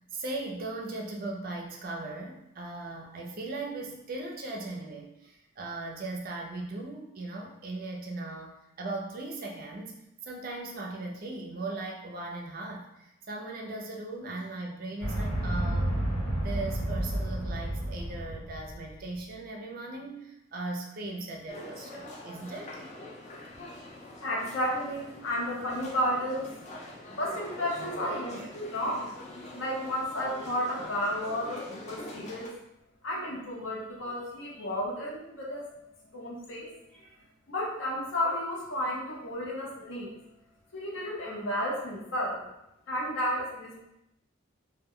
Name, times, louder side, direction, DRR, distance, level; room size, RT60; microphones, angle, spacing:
voice 1, 0.1-16.0 16.4-22.9, right 2 dB, 45° right, 0 dB, 0.4 m, -38 dB
sound 1, 15.0-18.9, right 1 dB, 85° left, 1.2 m, -31 dB
sound 2, 21.5-32.5, left 1 dB, 35° left, 0.3 m, -44 dB
voice 2, 24.2-26.7 27.2-29.1 29.5-32.5 33.0-35.7 36.1-37.1 37.5-40.2 40.7-42.4 42.9-43.9, equal, 70° left, -3 dB, 0.7 m, -32 dB
2.2 x 2.1 x 3.6 m, 0.85 s
head